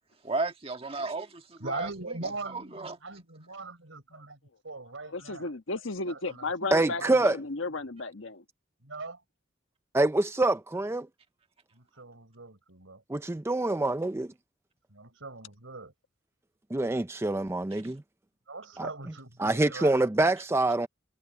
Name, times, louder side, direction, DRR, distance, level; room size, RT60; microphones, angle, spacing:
voice 1, 0.2-1.9 2.2-3.0, right 3 dB, 30° right, 1.6 m, -34 dB
voice 2, 1.6-4.4 4.6-5.5 6.1-6.4 7.0-7.2 8.8-9.2 11.7-13.0 14.9-15.9 18.5-19.9, right 3 dB, 80° right, 4.1 m, -41 dB
voice 3, 5.1-8.4, left 3 dB, 80° left, 1.4 m, -34 dB
voice 4, 6.7-7.4 9.9-11.1 13.1-14.3 16.7-18.0 18.8-18.9 19.4-20.9, right 2 dB, 15° right, 0.4 m, -26 dB
head